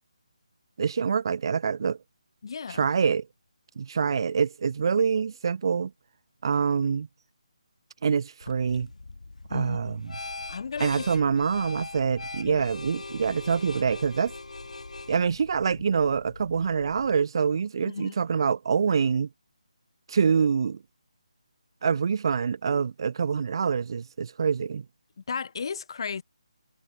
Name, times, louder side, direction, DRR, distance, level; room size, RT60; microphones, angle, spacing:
voice 1, 0.8-2.0 2.7-3.3 3.8-5.9 6.4-7.1 8.0-8.9 9.5-10.0 10.8-14.3 15.1-19.3 20.1-20.8 21.8-24.8, right 6 dB, 45° right, 0.4 m, -25 dB
voice 2, 2.4-2.9 9.5-10.0 10.5-11.1 12.4-12.7 17.8-18.1 25.2-26.2, left 5 dB, 45° left, 1.1 m, -34 dB
sound 1, 8.4-17.2, left 3 dB, 85° left, 2.6 m, -41 dB
figure-of-eight pair, 165°, 4 cm